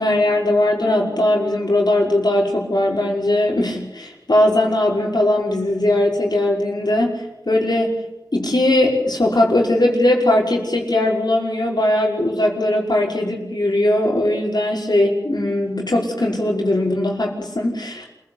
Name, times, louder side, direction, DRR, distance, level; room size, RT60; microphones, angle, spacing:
voice 1, 0.0-8.0 8.3-18.1, left 1 dB, 70° left, -2 dB, 5.4 m, -19 dB
27.0 x 16.0 x 8.1 m, 0.93 s
wide cardioid pair, 40°, 7 cm